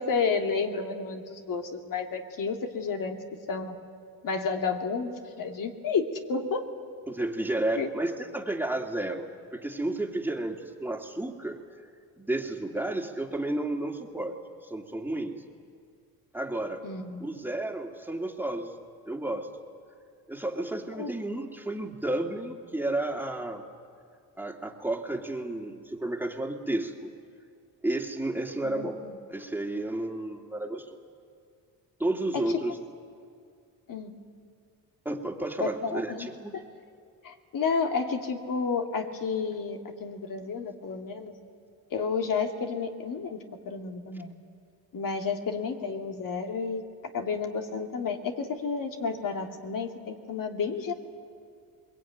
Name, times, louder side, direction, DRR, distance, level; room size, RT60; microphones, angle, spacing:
voice 1, 0.0-3.2 3.5-3.8 4.2-5.1 5.4-6.7 7.8-7.9 16.8-17.5 21.0-21.1 28.6-29.2 32.3-32.7 33.9-34.1 35.6-36.3 36.5-36.6 37.2-41.3 41.9-43.4 43.7-44.3 44.9-46.8 47.1-50.9, left 5 dB, 60° left, 4 dB, 2.4 m, -31 dB
voice 2, 7.1-9.3 9.5-11.6 12.2-14.4 14.6-15.4 16.3-16.9 17.2-18.7 19.1-19.5 20.3-23.6 24.4-27.1 27.8-29.0 29.3-30.8 32.0-32.8 35.0-36.5, right 2 dB, 5° right, 2 dB, 2.4 m, -32 dB
22.5 x 21.5 x 9.2 m, 2.3 s
cardioid pair, 85°, 37 cm